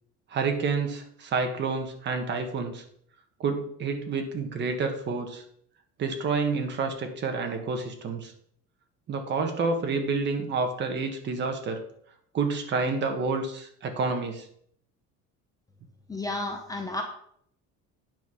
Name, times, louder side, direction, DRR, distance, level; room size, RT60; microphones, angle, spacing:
voice 1, 0.3-2.8 3.4-5.4 6.0-8.3 9.1-11.8 12.3-14.4, right 4 dB, 35° right, 5 dB, 1.4 m, -29 dB
voice 2, 16.1-17.0, left 2 dB, 10° left, 3 dB, 0.7 m, -32 dB
9.3 x 5.4 x 6.2 m, 0.66 s
cardioid pair, 170°, 32 cm